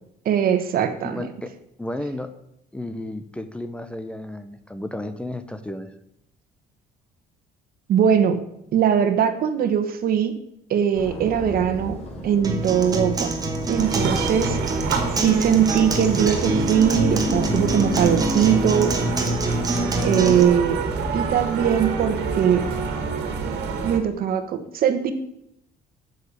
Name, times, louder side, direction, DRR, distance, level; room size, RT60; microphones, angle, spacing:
voice 1, 0.2-1.2 7.9-8.4 8.7-10.3 10.7-12.0 12.2-13.3 13.7-18.9 20.0-20.8 21.1-22.7 23.8-25.1, right 8 dB, 60° right, 9 dB, 1.4 m, -21 dB
voice 2, 1.0-1.5 1.8-2.3 2.7-5.9, left 1 dB, 5° left, 10 dB, 0.8 m, -33 dB
sound 1, 10.9-24.0, left 1 dB, 40° left, 3.2 m, -33 dB
Acoustic guitar, 12.4-20.4, right 2 dB, 20° right, 2.1 m, -25 dB
sound 2, 13.8-24.0, right 6 dB, 90° right, 1.8 m, -29 dB
9.6 x 6.7 x 8.4 m, 0.80 s
cardioid pair, 110°, 17 cm